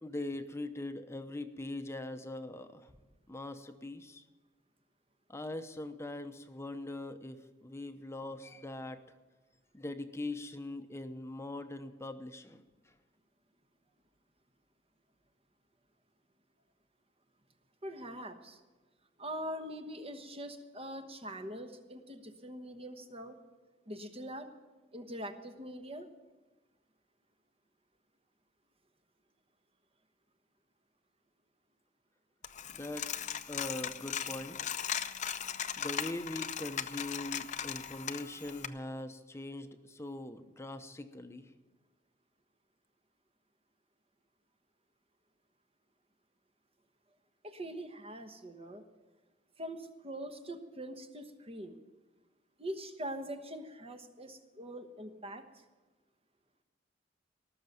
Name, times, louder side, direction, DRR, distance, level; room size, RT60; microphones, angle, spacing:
voice 1, 0.0-2.9 3.3-4.2 5.3-9.0 9.7-12.9 32.7-34.6 35.8-41.5, left 2 dB, 15° left, 8 dB, 0.8 m, -42 dB
voice 2, 17.8-18.6 19.2-23.4 23.9-24.5 24.9-26.1 47.4-48.8 49.6-51.8 52.6-55.4, equal, 35° right, 6 dB, 1.2 m, -43 dB
Coin (dropping), 32.4-38.7, left 8 dB, 40° left, 0.6 m, -38 dB
18.5 x 6.7 x 9.3 m, 1.2 s
head